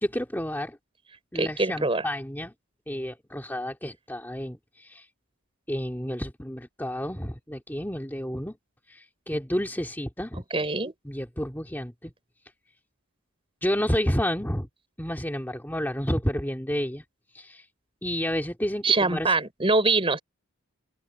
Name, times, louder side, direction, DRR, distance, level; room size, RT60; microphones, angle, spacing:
voice 1, 0.0-0.8 1.3-2.5 2.9-5.1 5.7-8.6 8.9-10.4 11.0-12.1 13.6-14.7 15.0-17.0 17.3-17.6 18.0-19.4, equal, 10° left, 2.0 m, -30 dB
voice 2, 1.3-2.0 10.5-10.9 18.8-20.2, right 3 dB, 25° right, 3.7 m, -23 dB
open air
head